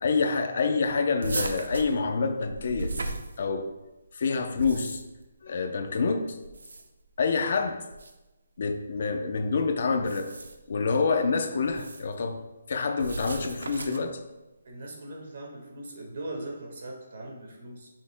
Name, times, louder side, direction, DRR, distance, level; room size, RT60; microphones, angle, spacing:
voice 1, 0.0-2.9 3.4-3.7 4.1-5.0 5.4-6.4 7.2-7.8 8.6-10.3 10.7-12.4 12.7-14.2, left 4 dB, 40° left, 7 dB, 0.6 m, -27 dB
sound 1, 1.2-3.8 4.4-5.2 6.4-7.1 7.9-8.1 9.9-10.7 11.6-12.1 13.0-14.2, right 3 dB, 90° right, 0.8 m, -36 dB
voice 2, 14.6-17.9, right 1 dB, 45° right, 0 dB, 1.6 m, -40 dB
9.2 x 6.4 x 2.2 m, 1.0 s
hypercardioid pair, 175°, 0 cm